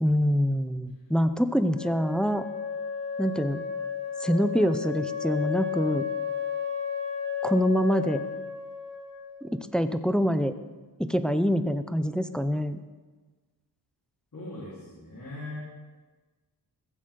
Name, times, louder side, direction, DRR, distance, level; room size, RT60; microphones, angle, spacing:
voice 1, 0.0-2.4 3.2-3.6 4.2-6.0 7.4-8.3 9.4-10.5 11.0-12.8, equal, ahead, 10 dB, 0.6 m, -25 dB
Wind instrument woodwind instrument, 1.7-9.4, left 7 dB, 75° left, 2.9 m, -33 dB
voice 2, 14.3-15.6, left 2 dB, 45° left, -7 dB, 4.0 m, -40 dB
16.0 x 15.0 x 3.8 m, 1.3 s
wide cardioid pair, 125°, 45 cm